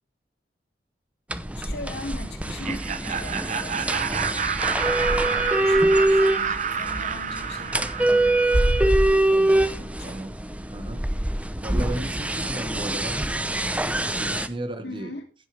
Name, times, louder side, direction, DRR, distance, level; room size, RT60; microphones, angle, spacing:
sound 1, 1.3-14.5, right 1 dB, 10° right, 0.8 m, -24 dB
voice 1, 1.5-4.0 5.0-8.5 9.8-10.4 14.8-15.3, left 2 dB, 70° left, 3.0 m, -40 dB
Laughter, 2.5-9.3, right 7 dB, 45° right, 0.9 m, -29 dB
voice 2, 9.2-9.7 10.0-10.3 10.7-11.0 11.6-15.1, right 1 dB, 30° right, 1.3 m, -35 dB
15.5 x 8.2 x 3.4 m
head